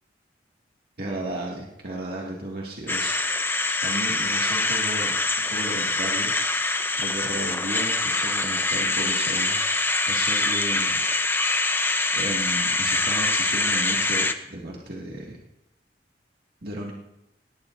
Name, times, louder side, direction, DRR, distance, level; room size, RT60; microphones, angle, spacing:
voice 1, 1.0-3.2 3.8-5.1 5.5-6.3 6.9-9.6 10.1-11.0 12.1-15.4 16.6-16.9, right 1 dB, 60° right, -3 dB, 2.0 m, -34 dB
sound 1, 2.9-14.3, left 2 dB, 15° left, 0.7 m, -24 dB
19.0 x 17.5 x 2.6 m, 0.88 s
head